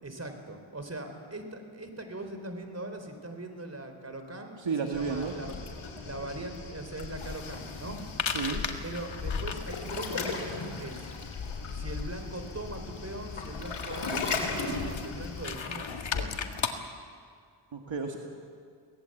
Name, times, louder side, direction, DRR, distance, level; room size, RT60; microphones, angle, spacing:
voice 1, 0.0-5.5 6.0-8.0 8.8-11.1 11.7-16.4, right 2 dB, 30° right, 6 dB, 4.1 m, -40 dB
voice 2, 4.6-5.3 8.3-8.6 17.7-18.2, right 5 dB, 65° right, 2 dB, 2.0 m, -32 dB
Waves surf, 4.9-15.5, left 4 dB, 80° left, 3.7 m, -37 dB
sound 1, 7.2-16.7, left 6 dB, 65° left, 1.8 m, -38 dB
23.5 x 18.0 x 8.0 m, 2.1 s
cardioid pair, 60°, 49 cm